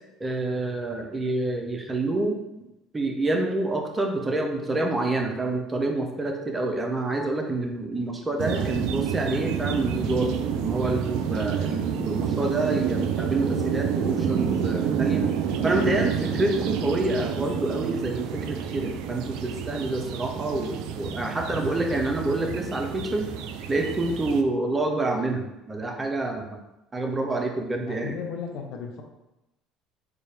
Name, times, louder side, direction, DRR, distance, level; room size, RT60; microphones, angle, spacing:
voice 1, 0.2-2.4 2.9-15.3 15.6-23.3 23.7-26.6 26.9-28.2, right 2 dB, 20° right, 3 dB, 0.6 m, -27 dB
sound 1, 8.4-24.4, right 7 dB, 70° right, 0.3 m, -29 dB
voice 2, 27.8-29.0, left 6 dB, 65° left, 3 dB, 0.6 m, -35 dB
4.1 x 2.4 x 3.4 m, 0.92 s
supercardioid pair, 80°, 0 cm